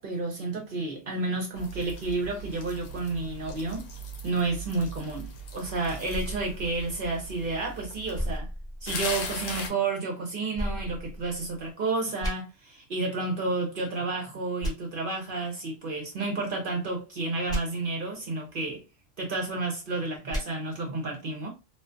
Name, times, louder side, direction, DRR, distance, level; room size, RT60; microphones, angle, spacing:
voice 1, 0.0-3.8 4.2-8.5 8.8-18.8 19.2-21.5, right 3 dB, 55° right, 0.7 m, -31 dB
sound 1, 1.5-8.4 8.9-9.7, left 1 dB, 85° left, 0.9 m, -39 dB
sound 2, 6.1-7.5 8.1-9.4 10.5-11.7 12.2-12.3 14.6-14.7 17.5-17.6 20.3-20.4, equal, 5° left, 0.6 m, -34 dB
2.4 x 2.4 x 2.4 m
omnidirectional pair, 1.3 m